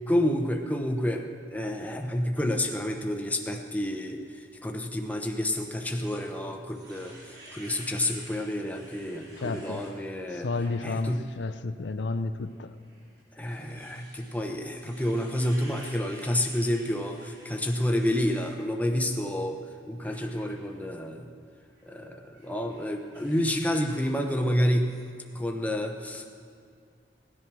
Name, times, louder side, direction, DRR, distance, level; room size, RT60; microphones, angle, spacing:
voice 1, 0.1-10.5 10.8-11.2 13.4-19.6 19.9-21.3 21.8-24.9 25.3-26.3, left 1 dB, 10° left, 3 dB, 0.8 m, -29 dB
sound 1, 5.2-9.9 10.4-10.8 11.2-11.4 12.4-18.5 20.0-20.7 21.6-21.9 22.3-24.6 24.9-25.0, right 1 dB, 60° right, 4.2 m, -52 dB
voice 2, 9.4-9.8 10.3-12.7, left 3 dB, 85° left, 11 dB, 0.6 m, -31 dB
17.5 x 10.5 x 6.1 m, 2.2 s
head